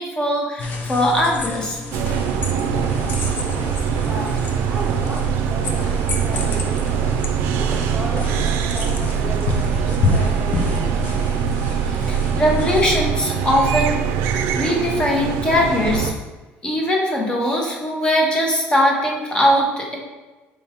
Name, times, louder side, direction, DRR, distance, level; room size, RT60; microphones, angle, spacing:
voice 1, 0.0-1.8 11.9-12.0 12.3-14.0 14.5-16.1 16.6-20.0, equal, 20° left, -1 dB, 0.8 m, -20 dB
sound 1, 0.6-12.9, left 3 dB, 45° left, 0.5 m, -29 dB
sound 2, 1.9-16.1, right 7 dB, 80° right, 0.3 m, -22 dB
voice 2, 3.9-7.1 7.5-11.2, right 1 dB, 5° right, -5 dB, 0.5 m, -35 dB
4.5 x 3.5 x 2.9 m, 1.2 s
cardioid pair, 145°, 4 cm